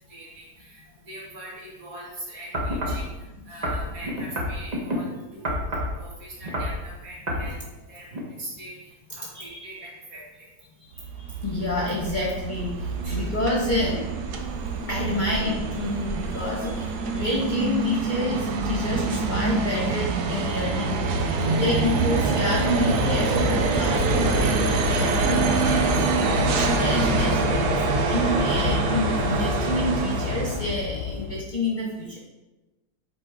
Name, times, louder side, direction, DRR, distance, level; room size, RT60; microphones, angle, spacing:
voice 1, 0.1-3.1 3.5-5.5 6.0-7.6 7.9-10.5 13.0-13.4, right 1 dB, 55° right, -5 dB, 2.2 m, -42 dB
sound 1, 2.5-3.1 3.6-5.0 5.4-6.0 6.4-6.8 7.3-7.5 8.1-8.2, equal, 30° right, 1.0 m, -27 dB
voice 2, 9.3-9.6 10.9-14.1 14.9-21.0 21.5-26.1 26.5-32.2, left 1 dB, 30° left, -4 dB, 1.2 m, -28 dB
sound 2, 10.9-30.7, right 4 dB, 75° right, 1.2 m, -26 dB
Train / Subway metro underground, 18.3-18.6 18.9-31.4, left 7 dB, 85° left, 1.2 m, -30 dB
7.8 x 4.1 x 3.7 m, 1.1 s
omnidirectional pair, 1.8 m